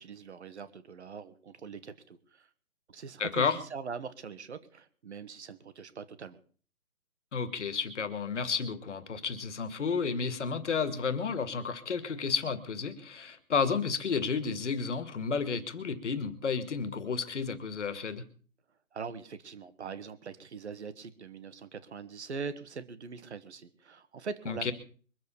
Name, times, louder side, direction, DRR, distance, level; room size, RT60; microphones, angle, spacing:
voice 1, 0.0-2.5 2.9-6.4 18.9-24.7, right 5 dB, 50° right, 13 dB, 1.7 m, -42 dB
voice 2, 3.2-3.6 7.3-18.2 24.5-24.7, left 5 dB, 55° left, 13 dB, 2.1 m, -31 dB
23.0 x 7.8 x 6.9 m, 0.43 s
hypercardioid pair, 165°, 43 cm